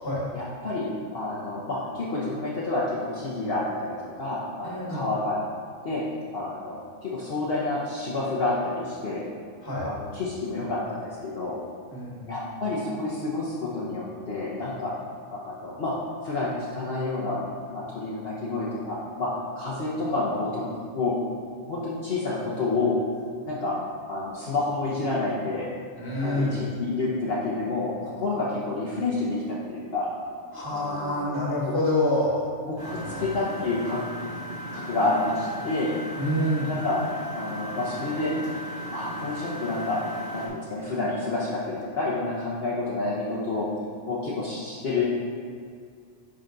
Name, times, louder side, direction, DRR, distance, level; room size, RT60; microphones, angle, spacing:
voice 1, 0.3-0.9 1.1-5.4 5.8-6.0 6.3-9.2 9.8-11.6 12.3-14.9 15.3-15.9 16.2-17.4 17.7-19.3 19.6-20.6 20.9-21.2 21.6-23.0 23.5-23.7 24.1-25.7 26.2-30.1 30.7-31.2 31.7-31.8 32.6-32.8 33.2-34.1 34.7-35.9 36.7-37.0 37.3-38.3 38.9-40.0 40.3-43.7 44.1-45.0, left 2 dB, 50° left, -7 dB, 1.1 m, -29 dB
voice 2, 4.6-5.0 9.6-9.9 11.9-12.2 26.0-26.6 30.5-32.4 32.8-33.3 36.2-36.7, left 1 dB, 15° left, -5 dB, 1.6 m, -27 dB
Engine, 32.8-40.5, equal, 75° right, 2.5 m, -36 dB
9.9 x 4.0 x 3.9 m, 2.1 s
omnidirectional pair, 1.3 m